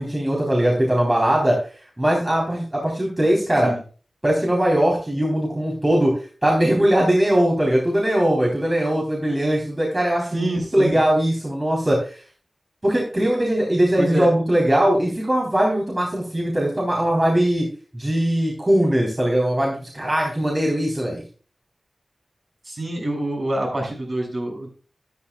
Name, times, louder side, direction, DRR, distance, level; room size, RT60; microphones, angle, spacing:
voice 1, 0.0-1.6 2.0-3.7 4.2-6.1 6.4-12.2 12.8-17.7 17.9-21.2, right 1 dB, 25° right, -2 dB, 3.8 m, -20 dB
voice 2, 10.3-11.0 14.0-14.3 22.6-24.7, right 1 dB, 50° right, 0 dB, 6.4 m, -26 dB
13.0 x 11.5 x 2.4 m, 0.37 s
wide cardioid pair, 70°, 0 cm